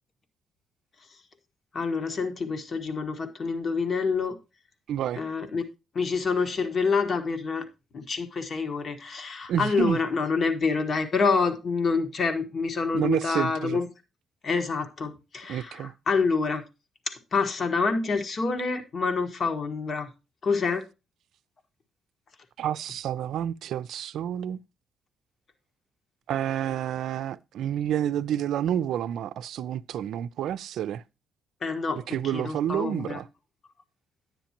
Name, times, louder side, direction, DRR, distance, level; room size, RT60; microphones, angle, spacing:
voice 1, 1.7-4.4 5.2-5.6 5.9-7.7 7.9-13.9 14.4-16.6 17.1-20.1 20.4-20.8 31.6-33.2, left 4 dB, 45° left, 1.5 m, -27 dB
voice 2, 4.9-5.2 9.5-10.0 12.9-13.8 15.5-15.9 22.6-24.6 26.3-31.0 32.1-33.3, right 10 dB, 75° right, 0.5 m, -29 dB
10.5 x 9.0 x 2.9 m
cardioid pair, 90°, 0 cm